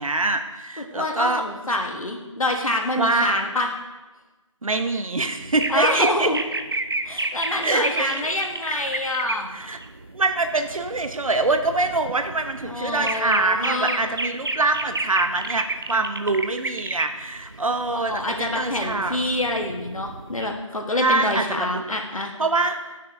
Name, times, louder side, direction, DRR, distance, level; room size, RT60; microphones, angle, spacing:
voice 1, 0.0-1.4 3.0-3.4 4.6-6.3 7.6-8.3 9.5-9.8 10.1-19.2 21.0-21.8 22.4-22.9, right 3 dB, 85° right, 7 dB, 0.8 m, -24 dB
voice 2, 0.8-3.7 5.7-6.4 7.0-9.6 12.6-14.0 18.1-22.3, left 1 dB, 90° left, 2 dB, 1.3 m, -26 dB
sound 1, 5.4-9.3 9.6-20.5, right 2 dB, 45° right, 0.5 m, -31 dB
10.5 x 6.2 x 2.7 m, 1.2 s
figure-of-eight pair, 175°, 17 cm